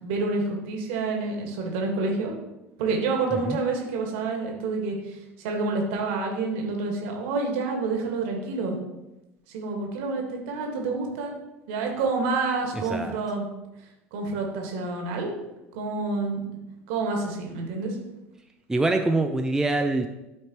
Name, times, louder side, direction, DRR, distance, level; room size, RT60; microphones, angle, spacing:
voice 1, 0.0-2.3 2.8-8.8 9.5-11.3 11.7-13.5 14.1-15.4 15.7-16.4 16.9-18.0, right 3 dB, 60° right, 1 dB, 1.6 m, -28 dB
voice 2, 12.7-13.2 18.7-20.1, right 2 dB, 5° right, 4 dB, 0.5 m, -24 dB
12.0 x 4.3 x 3.0 m, 0.98 s
figure-of-eight pair, 70°, 7 cm